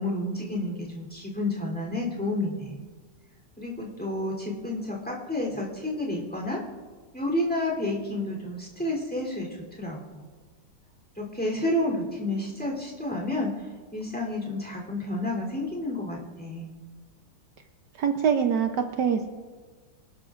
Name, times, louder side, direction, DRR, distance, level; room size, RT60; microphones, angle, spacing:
voice 1, 0.0-2.7 3.6-6.6 7.1-9.5 9.8-10.2 11.2-13.5 13.9-16.7, left 1 dB, 5° left, -1 dB, 3.2 m, -30 dB
voice 2, 18.0-19.3, right 7 dB, 70° right, 5 dB, 1.3 m, -24 dB
25.0 x 12.5 x 2.5 m, 1.4 s
omnidirectional pair, 2.0 m